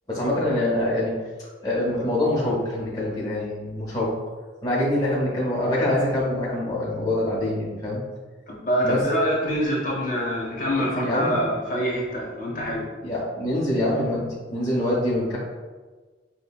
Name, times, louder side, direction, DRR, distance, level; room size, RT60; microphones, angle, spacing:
voice 1, 0.1-1.1 1.6-4.1 4.6-8.0 8.8-9.0 10.7-11.4 13.0-15.4, left 1 dB, 20° left, -7 dB, 0.7 m, -25 dB
voice 2, 8.5-12.9, equal, 50° left, -4 dB, 0.9 m, -25 dB
5.4 x 2.1 x 2.3 m, 1.3 s
head